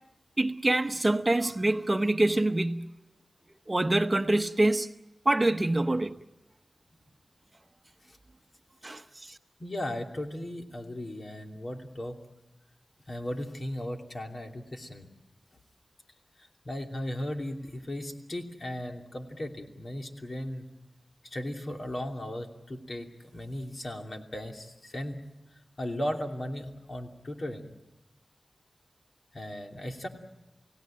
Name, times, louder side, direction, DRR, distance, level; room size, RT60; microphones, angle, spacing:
voice 1, 0.4-2.9 3.7-4.9 5.2-6.1 8.8-9.4, right 2 dB, 30° right, 0.9 m, -25 dB
voice 2, 9.6-12.2 13.1-15.1 16.4-20.6 21.2-25.2 25.8-27.7 29.3-30.1, left 1 dB, 55° left, 2.8 m, -36 dB
29.0 x 17.0 x 8.8 m
wide cardioid pair, 55°, 0 cm